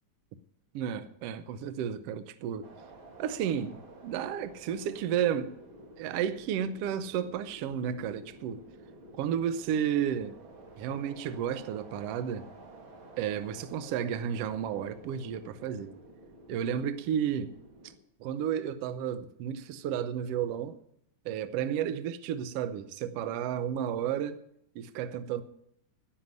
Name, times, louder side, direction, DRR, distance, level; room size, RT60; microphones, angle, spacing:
voice 1, 0.7-2.7 3.2-3.8 4.0-5.5 6.0-8.6 9.1-10.4 10.8-12.5 13.2-15.9 16.5-17.5 18.2-20.8 21.2-24.4 24.7-25.4, right 9 dB, 70° right, 1.5 m, -32 dB
sound 1, 2.6-18.0, right 2 dB, 45° right, 2.6 m, -51 dB
10.5 x 9.7 x 9.3 m
omnidirectional pair, 3.6 m